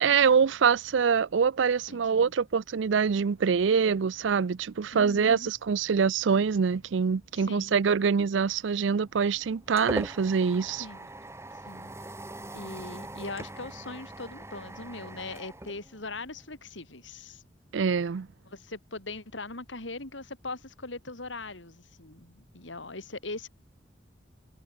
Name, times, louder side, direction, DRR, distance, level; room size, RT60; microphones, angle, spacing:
voice 1, 0.0-10.8 17.7-18.3, right 6 dB, 80° right, 0.5 m, -25 dB
voice 2, 1.9-2.3 4.9-5.5 7.3-7.8 10.8-11.1 11.7-11.9 12.5-17.4 18.5-23.5, left 3 dB, 85° left, 4.0 m, -40 dB
sound 1, 9.0-16.4, right 1 dB, 15° right, 2.9 m, -41 dB
head